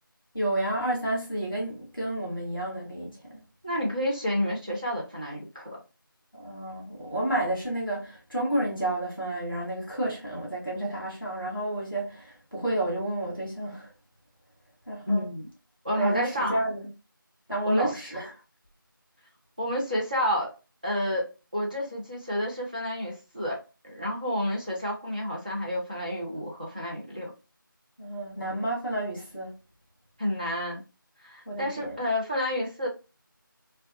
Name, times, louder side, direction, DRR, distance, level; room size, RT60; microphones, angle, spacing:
voice 1, 0.3-3.4 6.4-13.9 14.9-15.3 16.0-16.9 17.5-18.3 28.0-29.5 31.4-32.0, right 1 dB, 5° right, 0.9 m, -30 dB
voice 2, 3.6-5.8 15.1-15.5 15.8-16.6 17.6-18.0 19.6-20.5 20.8-27.3 30.2-30.8 31.2-32.9, left 1 dB, 20° right, 0.6 m, -30 dB
2.4 x 2.2 x 2.5 m
figure-of-eight pair, 175°, 12 cm